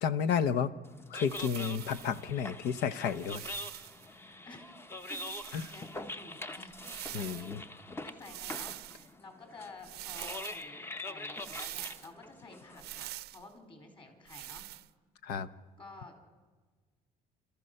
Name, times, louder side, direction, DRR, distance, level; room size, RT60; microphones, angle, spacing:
voice 1, 0.0-0.7 1.1-3.5 5.5-5.6 7.1-7.6 15.2-15.5, left 7 dB, 85° left, 13 dB, 0.9 m, -31 dB
sound 1, 0.8-13.1, left 2 dB, 15° left, 0.7 m, -44 dB
sound 2, 1.2-2.2 3.0-4.1 5.0-5.9 6.7-7.5 8.2-9.1 9.8-10.6 11.4-12.1 12.8-13.4 14.3-14.9, right 16 dB, 75° right, 0.5 m, -44 dB
voice 2, 5.1-14.6 15.8-16.2, left 2 dB, 30° left, 4 dB, 4.0 m, -52 dB
30.0 x 14.0 x 6.6 m, 1.4 s
cardioid pair, 110°, 17 cm